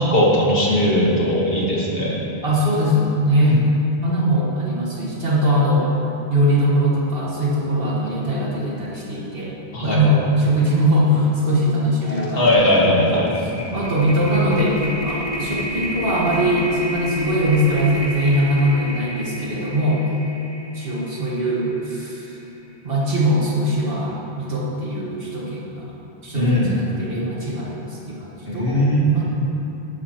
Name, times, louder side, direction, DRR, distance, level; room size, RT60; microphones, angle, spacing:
voice 1, 0.0-2.2 3.5-3.6 4.0-4.3 9.7-10.0 12.4-13.3 26.3-26.7 28.5-29.5, equal, 65° left, -4 dB, 1.9 m, -19 dB
voice 2, 2.4-3.7 4.0-5.9 6.3-9.5 9.8-20.0 20.7-22.4 22.8-25.9 26.2-28.9 29.1-29.3, equal, 65° right, -5 dB, 1.8 m, -21 dB
sound 1, 11.5-11.7 12.0-22.3, equal, 45° left, 1.1 m, -30 dB
12.0 x 9.4 x 3.0 m, 2.9 s
omnidirectional pair, 1.1 m